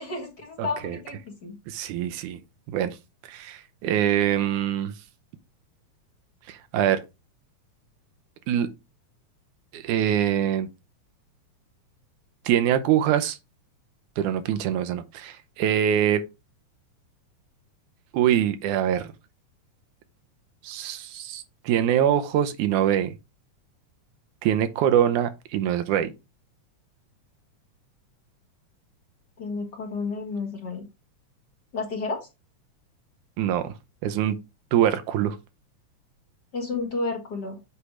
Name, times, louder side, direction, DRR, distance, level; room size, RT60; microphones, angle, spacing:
voice 1, 0.0-1.6 29.4-30.8 31.7-32.3 36.5-37.6, left 3 dB, 40° left, 1.9 m, -31 dB
voice 2, 0.6-1.0 1.7-2.4 2.7-3.0 3.3-4.9 6.5-7.0 8.5-8.7 9.7-10.7 12.5-13.4 14.2-16.2 18.1-19.1 20.6-23.1 24.4-26.1 33.4-33.7 34.0-34.4 34.7-35.4, right 10 dB, 85° right, 2.2 m, -24 dB
8.2 x 3.3 x 4.9 m
omnidirectional pair, 3.4 m